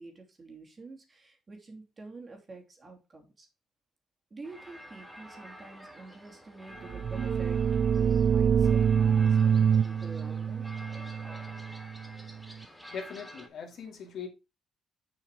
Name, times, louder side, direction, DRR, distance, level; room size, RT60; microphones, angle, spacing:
voice 1, 0.0-3.5 4.3-10.7, right 3 dB, 30° right, 2.8 m, -48 dB
sound 1, 4.4-13.5, equal, 5° right, 2.0 m, -49 dB
sound 2, 6.9-12.4, right 7 dB, 50° right, 0.4 m, -26 dB
voice 2, 12.6-14.3, left 6 dB, 65° left, 2.6 m, -41 dB
7.0 x 5.7 x 4.7 m
cardioid pair, 90°, 0 cm